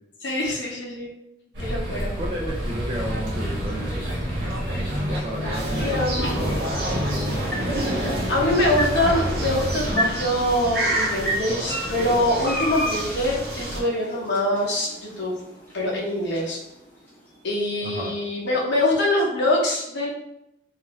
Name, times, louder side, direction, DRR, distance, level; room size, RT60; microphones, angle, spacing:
voice 1, 0.2-1.1 1.6-2.1 5.8-6.4 8.3-15.3 15.7-16.6 17.4-20.1, left 1 dB, 70° left, -4 dB, 0.8 m, -24 dB
sound 1, 1.5-9.9, equal, 80° right, 1.0 m, -28 dB
voice 2, 2.2-4.0 5.1-7.4 7.9-8.2 17.8-18.1, equal, 35° right, -3 dB, 0.3 m, -33 dB
sound 2, 2.5-18.6, equal, 10° left, 0.7 m, -35 dB
sound 3, 5.5-13.8, right 1 dB, 55° right, 0.7 m, -29 dB
2.6 x 2.4 x 3.0 m, 0.85 s
head